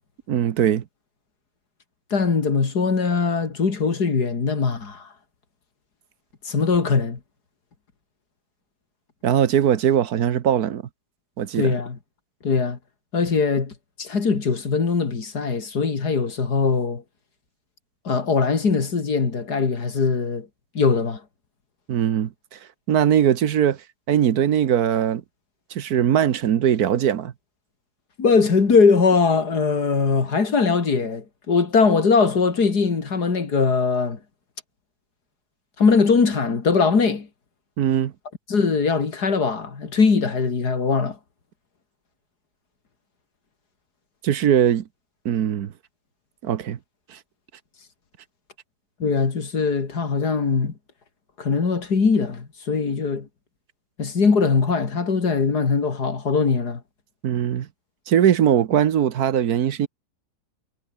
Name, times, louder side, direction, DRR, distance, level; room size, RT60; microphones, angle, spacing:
voice 1, 0.3-0.8 9.2-10.8 11.4-11.7 21.9-22.6 22.9-23.8 24.1-25.2 25.7-27.3 37.8-38.1 44.2-44.9 45.2-45.7 46.4-46.8 47.1-47.2 57.2-57.7 58.1-59.9, right 9 dB, 70° right, 1.5 m, -20 dB
voice 2, 2.1-5.1 6.4-7.2 11.6-12.0 12.4-12.8 13.1-13.7 14.0-17.0 18.0-20.5 20.7-21.2 28.2-34.2 35.8-37.3 38.5-41.2 49.0-50.7 51.4-53.3 54.0-56.8, left 5 dB, 80° left, 3.2 m, -21 dB
omnidirectional pair, 1.7 m